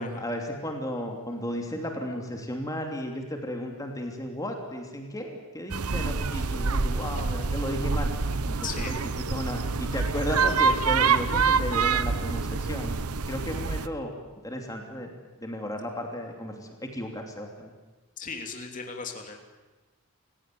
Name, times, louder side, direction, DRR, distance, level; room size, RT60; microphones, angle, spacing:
voice 1, 0.0-8.1 8.5-8.9 9.3-13.0 13.3-14.1 14.4-15.1 15.4-17.7, equal, 15° left, 2 dB, 3.0 m, -34 dB
sound 1, 5.7-13.9, right 5 dB, 85° right, 1.0 m, -26 dB
voice 2, 8.6-9.0 18.2-19.4, left 5 dB, 35° left, 3 dB, 3.0 m, -37 dB
29.5 x 17.0 x 9.4 m, 1.2 s
head